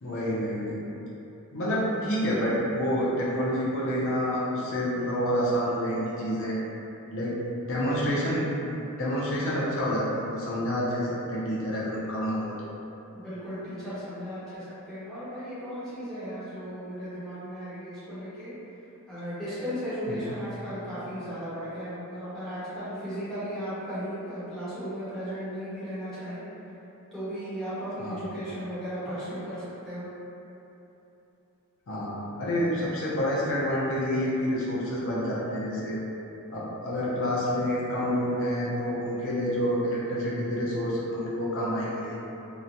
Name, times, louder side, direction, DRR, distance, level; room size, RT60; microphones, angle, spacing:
voice 1, 0.0-0.7 1.5-6.6 7.1-7.4 7.7-8.4 8.7-12.7 20.1-20.3 28.0-28.2 31.9-36.0 36.5-42.2, equal, 60° left, -7 dB, 0.5 m, -28 dB
voice 2, 13.1-18.5 19.1-26.4 27.1-30.1, equal, ahead, -15 dB, 0.9 m, -36 dB
2.9 x 2.1 x 2.6 m, 3.0 s
head